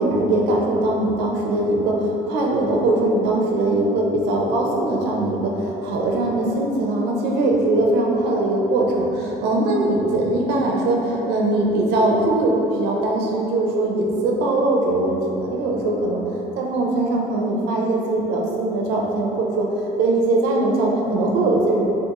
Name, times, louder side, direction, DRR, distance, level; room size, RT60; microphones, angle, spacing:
voice 1, 0.0-16.2 16.6-21.8, right 2 dB, 85° right, -1 dB, 0.4 m, -21 dB
3.5 x 2.3 x 2.8 m, 2.9 s
cardioid pair, 110°, 17 cm